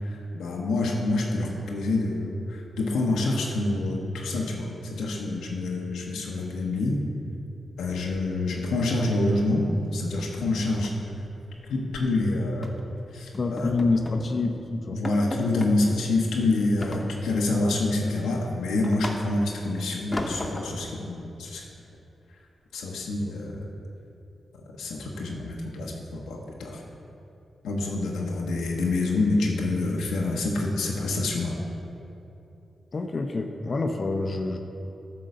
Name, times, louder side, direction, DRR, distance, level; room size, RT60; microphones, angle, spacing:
voice 1, 0.0-7.0 7.8-10.9 11.7-12.8 13.1-13.7 14.9-21.6 22.7-23.7 24.8-26.8 27.6-31.6, left 2 dB, 90° left, -1 dB, 0.8 m, -27 dB
sound 1, 7.9-8.7 9.0-9.2 9.5-9.8 10.0-10.1 10.5-12.1 12.6-12.9 13.3-14.3 14.6-14.7 15.0-15.8 16.8-17.5 18.0-19.6 20.1-20.9, left 1 dB, 30° left, 0.9 m, -36 dB
voice 2, 13.4-15.0 32.9-34.6, left 3 dB, 50° left, 4 dB, 0.5 m, -27 dB
9.1 x 3.8 x 6.5 m, 2.8 s
supercardioid pair, 45°, 0 cm